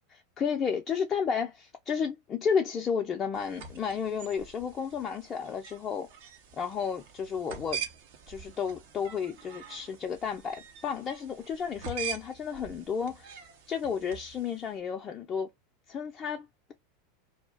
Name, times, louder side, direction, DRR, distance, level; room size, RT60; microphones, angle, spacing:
voice 1, 0.4-6.1 6.6-7.8 8.3-13.4 13.7-15.5 15.9-16.7, left 6 dB, 30° left, 0.4 m, -32 dB
sound 1, 3.3-14.7, right 7 dB, 60° right, 0.6 m, -44 dB
2.3 x 2.0 x 3.3 m
figure-of-eight pair, 85°, 0 cm